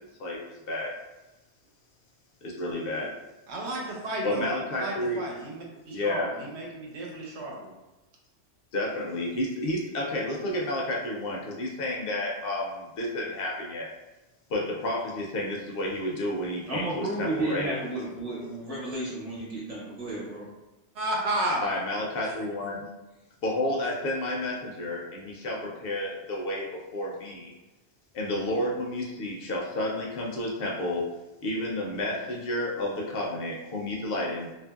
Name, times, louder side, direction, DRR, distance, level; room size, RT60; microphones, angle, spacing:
voice 1, 2.4-3.1 4.2-5.3 5.9-6.3 8.7-13.9 14.5-17.7 21.6-22.9 23.4-27.5 28.1-31.1 31.4-34.5, left 1 dB, 65° left, -2 dB, 0.7 m, -31 dB
voice 2, 3.5-4.5 4.8-7.7 20.9-21.6, right 1 dB, 85° right, -1 dB, 1.0 m, -32 dB
voice 3, 16.7-20.5, right 2 dB, 35° right, -6 dB, 0.9 m, -32 dB
2.8 x 2.5 x 2.3 m, 1.0 s
omnidirectional pair, 1.1 m